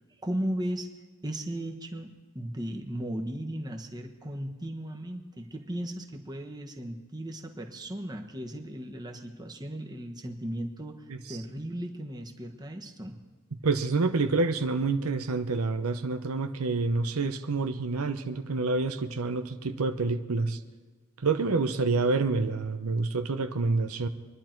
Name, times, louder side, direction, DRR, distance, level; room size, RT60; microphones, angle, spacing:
voice 1, 0.2-0.9 1.2-2.1 2.3-13.2, right 1 dB, 20° right, 2 dB, 1.3 m, -36 dB
voice 2, 13.6-20.6 21.2-24.1, right 3 dB, 85° right, 8 dB, 0.8 m, -28 dB
26.0 x 11.0 x 4.5 m, 1.4 s
head